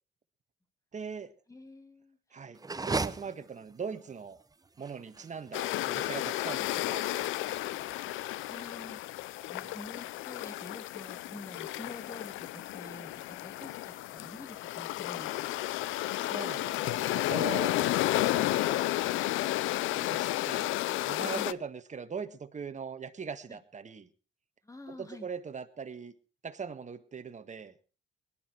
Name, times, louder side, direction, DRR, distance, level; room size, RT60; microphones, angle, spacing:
voice 1, 0.9-1.3 2.3-4.4 4.8-7.2 9.6-9.8 16.2-17.7 18.3-18.9 19.9-20.7 21.0-24.1 24.9-26.1 26.4-27.7, right 6 dB, 35° right, 9 dB, 1.6 m, -41 dB
voice 2, 1.5-2.5 8.3-9.0 9.4-15.6 21.2-21.5 23.5-23.6 24.6-25.3, left 2 dB, 15° left, 8 dB, 2.7 m, -48 dB
sound 1, 2.6-8.7, right 3 dB, 20° right, 0.9 m, -39 dB
sound 2, 5.5-21.5, left 16 dB, 80° left, 0.6 m, -32 dB
19.0 x 12.0 x 4.5 m, 0.37 s
supercardioid pair, 65°, 20 cm